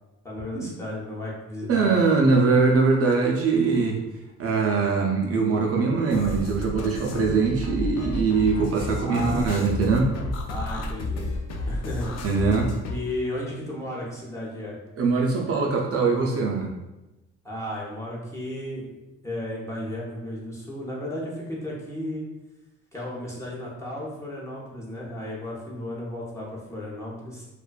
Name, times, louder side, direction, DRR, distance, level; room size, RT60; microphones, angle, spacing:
voice 1, 0.2-2.0 8.9-9.5 10.5-11.3 11.7-12.2 12.9-14.8 17.4-18.9 19.2-22.2 22.9-27.5, left 1 dB, 10° left, -6 dB, 0.7 m, -34 dB
voice 2, 1.7-4.0 4.4-10.1 12.2-12.7 15.0-16.7, right 4 dB, 50° right, 0 dB, 0.4 m, -22 dB
sound 1, 6.1-13.0, left 2 dB, 60° left, 0.5 m, -31 dB
2.5 x 2.2 x 2.2 m, 1.0 s
cardioid pair, 90°, 30 cm